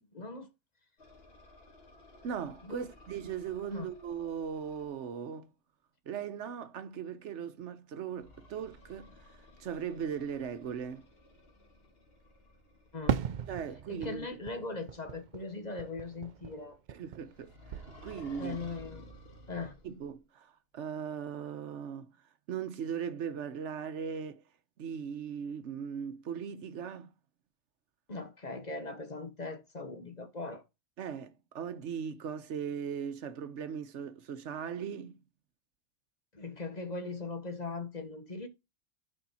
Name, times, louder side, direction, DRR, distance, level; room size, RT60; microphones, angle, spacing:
voice 1, 0.1-0.5 2.6-2.9 3.7-3.9 12.9-13.2 13.9-16.8 18.4-19.1 19.5-19.7 28.1-30.6 36.3-38.5, left 3 dB, 40° left, 1.3 m, -39 dB
sound 1, 1.0-5.1 8.2-14.5 17.3-20.2, left 1 dB, 55° left, 2.2 m, -55 dB
voice 2, 2.2-5.5 6.1-9.3 9.6-11.1 13.5-14.3 16.9-18.6 19.8-22.1 22.5-24.4 24.8-27.1 31.0-35.2, right 7 dB, 80° right, 1.1 m, -38 dB
Fireworks, 13.1-17.4 17.7-18.5, right 8 dB, 50° right, 0.6 m, -38 dB
8.6 x 4.9 x 4.1 m
omnidirectional pair, 1.2 m